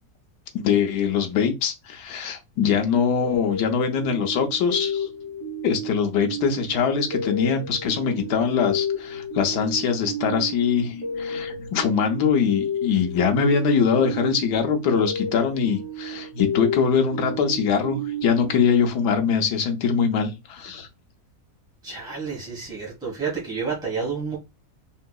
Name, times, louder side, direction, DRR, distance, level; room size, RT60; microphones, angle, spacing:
voice 1, 0.5-5.1 5.6-20.9, left 6 dB, 85° left, 1.3 m, -23 dB
sound 1, 3.2-19.6, left 1 dB, 35° right, 1.3 m, -32 dB
voice 2, 21.8-24.4, right 5 dB, 5° right, 0.8 m, -30 dB
3.8 x 2.7 x 2.2 m
omnidirectional pair, 1.7 m